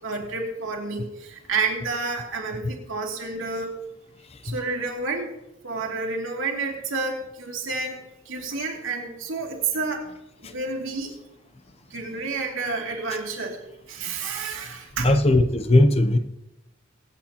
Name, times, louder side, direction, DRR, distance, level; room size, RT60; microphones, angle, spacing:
voice 1, 0.0-3.7 4.4-5.3 5.6-10.0 10.4-11.1 11.9-13.6 13.9-15.2, right 4 dB, 75° right, 0 dB, 2.5 m, -30 dB
voice 2, 15.0-16.2, left 1 dB, 30° left, 9 dB, 0.6 m, -18 dB
24.5 x 8.4 x 2.9 m, 0.91 s
head